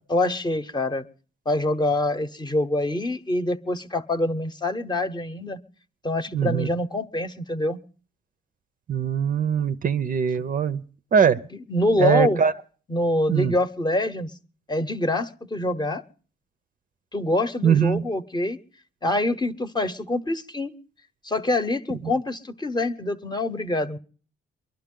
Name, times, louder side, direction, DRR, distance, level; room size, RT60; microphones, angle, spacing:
voice 1, 0.1-1.0 1.5-5.6 6.0-7.8 10.4-10.5 11.5-12.4 12.9-14.3 14.7-16.0 17.1-18.6 19.0-20.7 21.2-24.0, left 1 dB, 20° left, 0.9 m, -25 dB
voice 2, 6.3-6.7 8.9-10.8 11.1-11.4 12.0-12.5 13.3-13.5 17.6-18.0, right 7 dB, 45° right, 0.6 m, -21 dB
23.5 x 11.5 x 3.7 m
cardioid pair, 90°, 20 cm